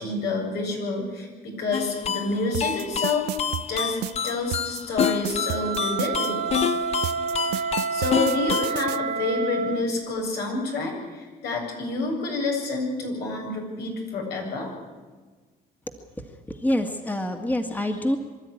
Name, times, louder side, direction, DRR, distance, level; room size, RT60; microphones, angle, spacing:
voice 1, 0.0-3.3 3.7-4.0 4.2-6.5 7.5-14.7, left 3 dB, 75° left, 1 dB, 7.8 m, -28 dB
sound 1, 1.7-8.7, left 8 dB, 40° left, 0.7 m, -28 dB
sound 2, 2.5-6.3 7.0-9.0, right 16 dB, 80° right, 0.7 m, -31 dB
Wind instrument woodwind instrument, 5.2-9.9, right 6 dB, 65° right, 1.3 m, -29 dB
voice 2, 16.2-18.2, left 1 dB, 10° left, 5 dB, 1.9 m, -26 dB
25.0 x 13.0 x 9.9 m, 1.4 s
cardioid pair, 110°, 17 cm